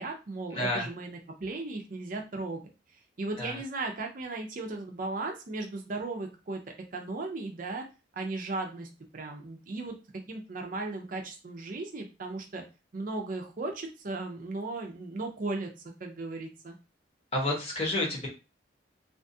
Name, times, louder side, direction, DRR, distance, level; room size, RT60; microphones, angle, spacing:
voice 1, 0.0-2.6 3.2-6.6 6.9-7.8 8.1-10.0 10.3-12.6 12.9-15.7 16.0-16.8, right 2 dB, 45° right, 3 dB, 0.5 m, -36 dB
voice 2, 0.5-0.9 3.4-3.6 17.3-18.3, left 1 dB, 35° left, -2 dB, 0.9 m, -30 dB
2.5 x 2.3 x 2.6 m, 0.30 s
head